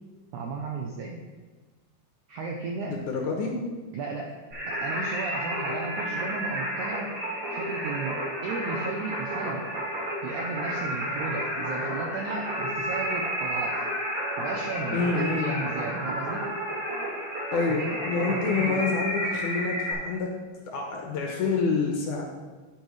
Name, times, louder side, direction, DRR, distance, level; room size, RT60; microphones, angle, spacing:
voice 1, 0.3-1.2 2.3-3.0 3.9-4.3 4.7-7.1 7.5-9.6 10.2-13.8 14.4-16.4 17.7-18.0 18.3-18.9, right 4 dB, 80° right, 1 dB, 1.7 m, -34 dB
voice 2, 2.9-3.5 14.9-15.7 17.5-20.3 20.7-22.2, left 4 dB, 70° left, 0 dB, 2.1 m, -27 dB
Singing, 4.5-19.9, equal, 40° right, 3.4 m, -31 dB
10.0 x 8.7 x 3.2 m, 1.3 s
omnidirectional pair, 4.4 m